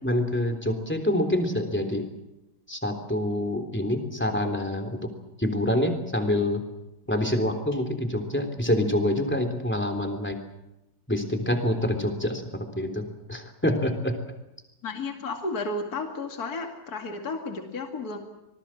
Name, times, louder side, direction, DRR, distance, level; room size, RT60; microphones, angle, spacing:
voice 1, 0.0-2.0 2.7-5.1 5.4-6.6 7.1-10.4 11.1-14.2, left 1 dB, 5° left, 6 dB, 3.4 m, -26 dB
voice 2, 14.8-18.2, left 3 dB, 50° left, 3 dB, 2.8 m, -33 dB
27.0 x 20.0 x 7.5 m, 0.92 s
omnidirectional pair, 2.1 m